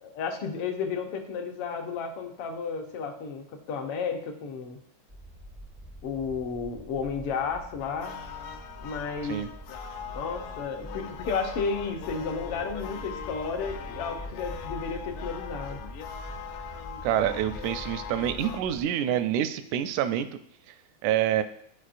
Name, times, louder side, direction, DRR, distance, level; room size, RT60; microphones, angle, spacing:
voice 1, 0.0-4.8 6.0-8.2 8.8-9.5 10.1-15.8, left 5 dB, 70° left, 3 dB, 1.4 m, -32 dB
sound 1, 5.1-18.8, right 1 dB, 5° right, 0.4 m, -44 dB
sound 2, 7.8-18.6, left 8 dB, 85° left, 2.1 m, -41 dB
voice 2, 17.0-20.3 21.0-21.4, right 10 dB, 85° right, 10 dB, 1.9 m, -27 dB
13.0 x 4.7 x 2.5 m, 0.70 s
omnidirectional pair, 3.4 m